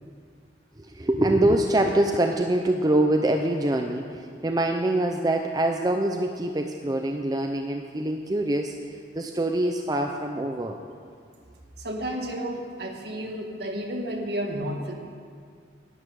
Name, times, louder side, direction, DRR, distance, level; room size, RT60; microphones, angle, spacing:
voice 1, 0.8-10.8, right 1 dB, 20° right, 4 dB, 0.5 m, -24 dB
voice 2, 11.8-14.9, equal, 55° right, 2 dB, 1.7 m, -31 dB
11.0 x 8.5 x 9.2 m, 2.2 s
head